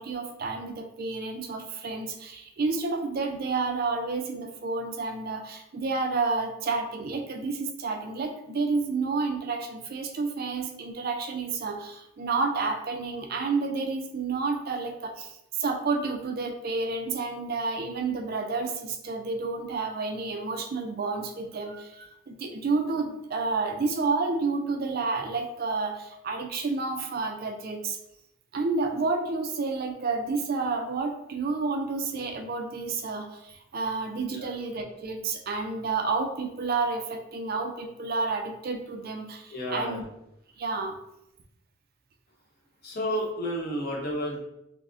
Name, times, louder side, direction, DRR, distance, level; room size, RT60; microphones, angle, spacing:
voice 1, 0.0-28.0 28.5-40.0 40.6-41.0, right 4 dB, 45° right, 4 dB, 0.4 m, -30 dB
voice 2, 39.5-40.1 42.8-44.4, equal, 45° left, -2 dB, 0.8 m, -31 dB
5.7 x 2.0 x 2.5 m, 0.83 s
head